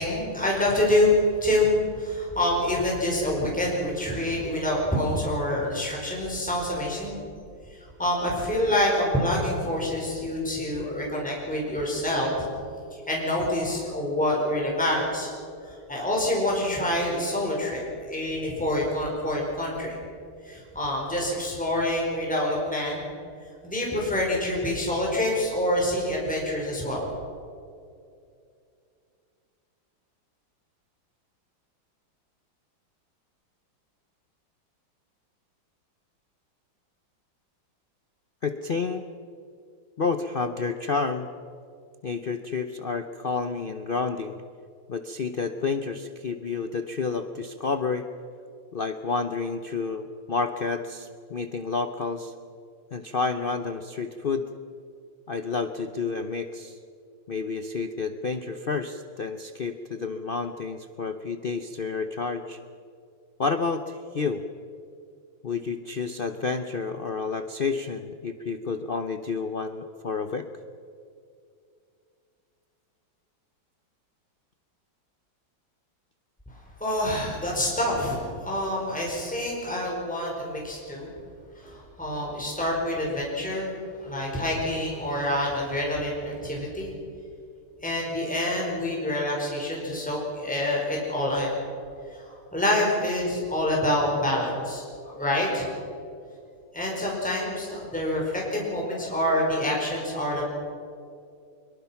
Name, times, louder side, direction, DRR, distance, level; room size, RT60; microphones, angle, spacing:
voice 1, 0.0-7.2 8.0-12.5 13.1-15.3 15.6-20.0 20.4-23.1 23.6-27.0 76.8-81.1 81.6-83.7 84.0-86.9 87.8-91.5 92.1-95.7 96.7-100.4, left 1 dB, 5° left, -3 dB, 4.9 m, -26 dB
voice 2, 38.4-39.0 40.0-41.3 42.0-44.4 44.9-48.1 48.7-52.3 52.9-54.5 55.3-56.8 57.3-62.6 63.4-64.4 65.4-70.5, left 4 dB, 90° left, 7 dB, 0.4 m, -30 dB
23.0 x 22.5 x 5.9 m, 2.4 s
omnidirectional pair, 2.1 m